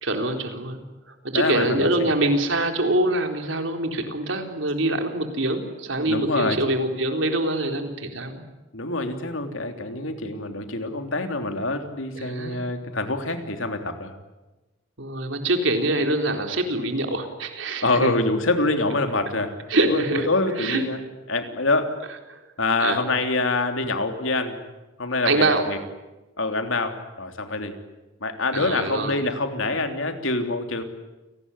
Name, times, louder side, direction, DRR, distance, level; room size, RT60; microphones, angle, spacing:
voice 1, 0.0-8.4 12.1-12.6 15.0-18.1 19.7-20.3 20.6-20.8 22.3-22.4 22.8-23.0 25.2-25.7 28.5-29.2, right 2 dB, 70° right, 5 dB, 4.0 m, -24 dB
voice 2, 1.3-2.3 6.0-6.7 8.7-14.1 17.8-21.0 21.3-21.9 22.6-24.6 25.0-25.8 26.4-27.8 28.2-30.8, left 2 dB, 85° left, 6 dB, 3.2 m, -25 dB
29.5 x 18.5 x 9.9 m, 1.1 s
head